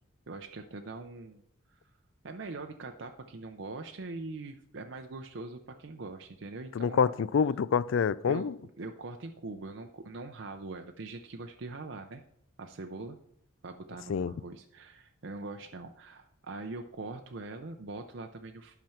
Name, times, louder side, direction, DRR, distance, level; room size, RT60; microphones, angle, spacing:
voice 1, 0.3-1.4 1.7-1.8 2.2-7.1 8.3-8.5 8.8-12.2 12.6-13.2 13.6-18.7, right 3 dB, 60° right, 0.6 m, -42 dB
voice 2, 6.7-8.5 14.1-14.3, left 6 dB, 70° left, 0.3 m, -27 dB
10.5 x 5.9 x 5.7 m
head